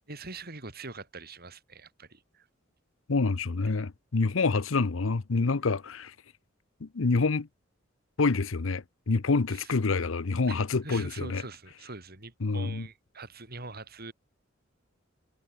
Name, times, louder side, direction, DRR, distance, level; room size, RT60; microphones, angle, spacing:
voice 1, 0.1-2.5 9.5-9.7 10.5-14.1, right 3 dB, 50° right, 5.6 m, -43 dB
voice 2, 3.1-6.1 6.8-7.5 8.2-11.4 12.4-12.8, left 3 dB, 80° left, 0.8 m, -27 dB
head